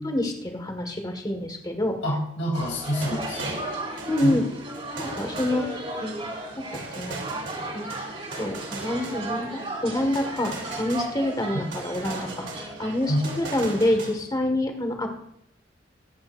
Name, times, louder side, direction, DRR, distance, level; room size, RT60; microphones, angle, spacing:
voice 1, 0.0-2.0 4.1-4.4 5.0-5.7 6.0-6.1 6.6-7.2 7.7-7.9 8.4-12.3 12.5-15.3, left 1 dB, 20° left, 4 dB, 1.7 m, -27 dB
voice 2, 2.0-3.7 4.2-4.4 13.1-13.2, equal, 85° left, -2 dB, 3.2 m, -27 dB
sound 1, 2.5-14.0, right 2 dB, 30° right, 3.0 m, -35 dB
sound 2, 2.8-6.1 6.7-9.6 10.1-11.4 11.7-14.1, right 2 dB, 75° right, 3.0 m, -39 dB
22.5 x 8.7 x 2.6 m, 0.77 s
head